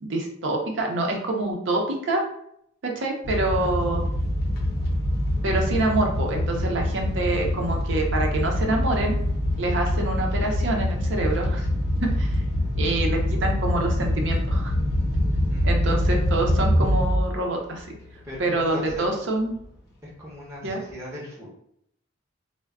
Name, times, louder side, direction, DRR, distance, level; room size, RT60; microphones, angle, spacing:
voice 1, 0.0-2.2 2.8-4.0 5.4-9.1 9.6-11.6 12.0-12.4 12.8-14.7 15.6-17.9 18.4-19.6 20.6-20.8, right 2 dB, 70° right, 1 dB, 0.6 m, -26 dB
sound 1, 3.2-17.4 17.7-18.1 18.5-18.6 18.9-19.0, left 1 dB, 55° left, 0.7 m, -24 dB
voice 2, 15.5-16.5 18.2-19.1 20.0-21.5, left 1 dB, 15° right, -6 dB, 0.7 m, -39 dB
2.2 x 2.1 x 3.5 m, 0.72 s
head